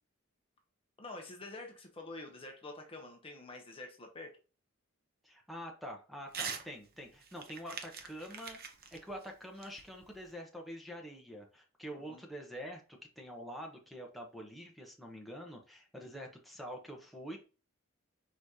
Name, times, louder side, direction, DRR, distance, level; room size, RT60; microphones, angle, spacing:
voice 1, 1.0-4.3 12.1-12.2, left 2 dB, 25° left, 2 dB, 0.8 m, -47 dB
voice 2, 5.2-17.4, equal, ahead, 0 dB, 0.9 m, -46 dB
Crumpling crinkling / Tearing, 6.3-6.7 7.0-10.3, right 6 dB, 45° right, 0.7 m, -44 dB
4.8 x 4.0 x 2.7 m, 0.33 s
head